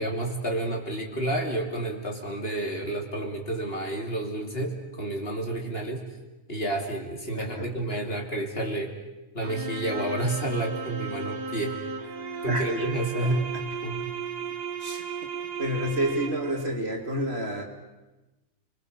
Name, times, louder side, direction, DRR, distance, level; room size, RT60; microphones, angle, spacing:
voice 1, 0.0-6.0 6.5-8.9 9.3-11.8 12.4-13.5 13.8-14.1, right 1 dB, 35° left, 2 dB, 3.1 m, -30 dB
voice 2, 7.3-7.7 12.5-12.8 13.2-13.4 14.8-15.0 15.6-17.6, equal, 40° right, 2 dB, 3.0 m, -29 dB
sound 1, 9.4-16.7, right 5 dB, 75° right, 2.4 m, -35 dB
29.5 x 22.0 x 6.8 m, 1.1 s
omnidirectional pair, 1.7 m